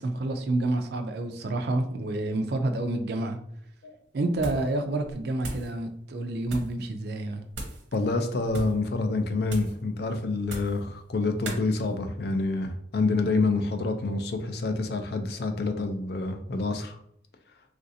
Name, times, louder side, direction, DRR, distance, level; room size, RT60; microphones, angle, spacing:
voice 1, 0.0-3.4 4.1-7.4, right 2 dB, 60° right, 5 dB, 0.4 m, -29 dB
sound 1, 4.3-4.7 5.0-5.7 6.4-6.8 7.5-7.9 8.4-8.8 9.5-9.8 10.4-10.8 11.4-11.6, right 1 dB, 80° right, 0.8 m, -37 dB
voice 2, 7.9-17.0, left 3 dB, 55° left, 7 dB, 0.4 m, -27 dB
3.1 x 2.5 x 2.7 m, 0.68 s
head